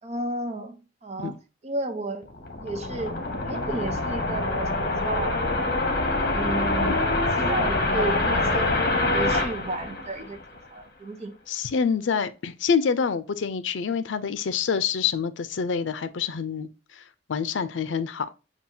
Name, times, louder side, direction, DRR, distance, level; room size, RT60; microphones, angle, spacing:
voice 1, 0.0-1.3 1.6-2.3 2.6-5.4 6.2-7.0 7.4-8.9 9.1-10.4 10.7-11.4, right 2 dB, 35° right, 0.7 m, -32 dB
sound 1, 2.2-10.6, left 2 dB, 55° left, 1.2 m, -25 dB
voice 2, 11.5-16.7 17.0-17.1 17.3-18.3, left 6 dB, 85° left, 0.5 m, -26 dB
7.1 x 2.4 x 2.6 m
head